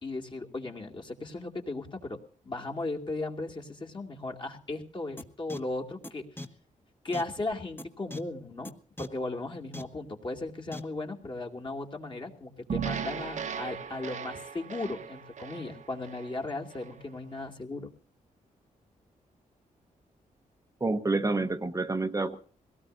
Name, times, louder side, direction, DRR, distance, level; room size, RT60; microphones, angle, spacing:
voice 1, 0.0-2.2 2.4-6.3 7.0-8.7 9.0-17.9, left 2 dB, 35° left, 2 dB, 2.4 m, -36 dB
sound 1, 5.2-5.3 5.5-5.6 6.0-6.1 6.4-6.5 7.1-7.2 7.8-7.9 8.1-8.2 8.6-8.7 9.0-9.1 9.7-9.8 10.7-10.8, left 2 dB, 15° left, 1.4 m, -38 dB
sound 2, 12.7-17.0, right 7 dB, 60° right, 1.2 m, -37 dB
voice 2, 20.8-22.3, right 3 dB, 20° right, 6 dB, 1.0 m, -28 dB
22.5 x 17.5 x 2.6 m, 0.41 s
cardioid pair, 90°, 14 cm